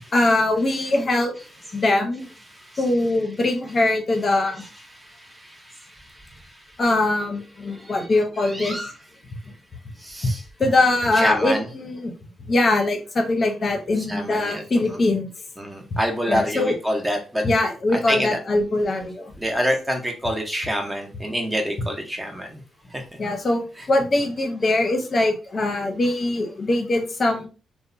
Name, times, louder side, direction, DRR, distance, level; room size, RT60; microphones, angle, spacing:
voice 1, 0.0-1.3 1.7-2.3 2.8-4.6 6.8-8.8 10.6-12.1 12.5-15.3 16.3-16.7 17.4-19.3 23.2-27.5, left 2 dB, 40° left, 4 dB, 0.6 m, -22 dB
voice 2, 1.4-3.0 3.4-4.3 4.6-6.6 7.7-9.0 10.0-10.4 11.1-11.7 14.0-15.0 15.6-17.4 17.9-18.4 19.4-22.6 22.9-23.0 23.8-23.9 24.2-24.3, equal, 10° right, 3 dB, 0.7 m, -29 dB
2.9 x 2.1 x 2.5 m, 0.36 s
cardioid pair, 95°, 0 cm